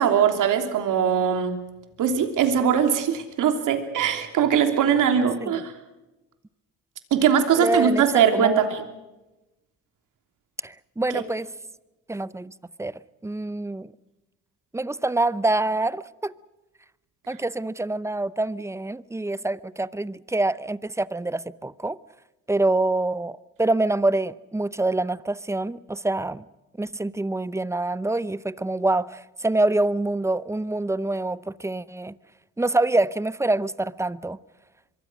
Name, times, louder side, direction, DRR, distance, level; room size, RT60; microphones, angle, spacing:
voice 1, 0.0-1.5 2.0-5.7 7.1-8.8 11.1-11.2, right 8 dB, 70° right, 3.2 m, -21 dB
voice 2, 7.6-8.6 10.6-11.5 12.1-12.5 12.8-13.9 14.7-16.3 17.3-22.0 22.5-26.4 26.8-32.1 32.6-34.4, right 2 dB, 10° right, 0.6 m, -26 dB
24.5 x 22.5 x 6.2 m
cardioid pair, 90°, 32 cm